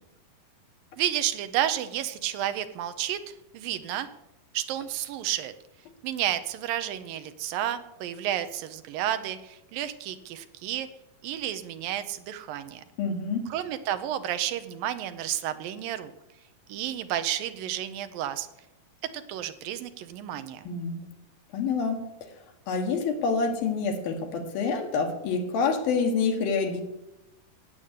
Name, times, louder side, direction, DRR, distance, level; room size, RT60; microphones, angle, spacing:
voice 1, 1.0-4.1 4.5-5.5 6.0-10.9 11.2-12.8 13.5-16.1 16.7-18.5 19.1-20.7, right 11 dB, 80° right, 11 dB, 2.6 m, -31 dB
voice 2, 13.0-13.5 20.7-21.0 21.5-22.1 22.7-26.8, left 4 dB, 85° left, 5 dB, 3.5 m, -27 dB
15.5 x 9.0 x 8.3 m, 0.94 s
omnidirectional pair, 4.1 m